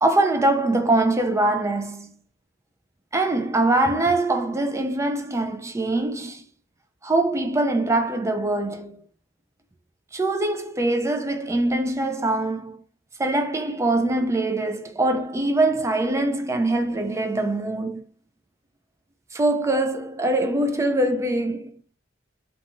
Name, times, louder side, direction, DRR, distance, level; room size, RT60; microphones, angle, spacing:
voice 1, 0.0-2.1 3.1-6.5 7.0-9.0 10.1-12.8 13.2-18.1 19.3-21.7, right 2 dB, 15° right, 0.4 m, -23 dB
2.5 x 2.4 x 2.8 m
head